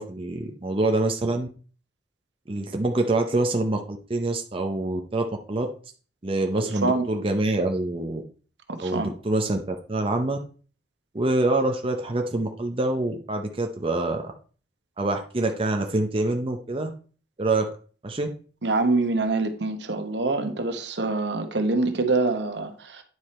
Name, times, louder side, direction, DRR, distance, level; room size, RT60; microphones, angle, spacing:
voice 1, 0.0-1.5 2.5-5.7 6.2-8.2 8.8-10.4 11.1-14.2 15.0-16.9 17.4-17.7 18.0-18.3, right 2 dB, 30° right, 0.7 m, -25 dB
voice 2, 6.6-7.1 8.7-9.1 18.6-23.0, right 3 dB, 70° right, 1.2 m, -25 dB
9.6 x 4.9 x 4.3 m
head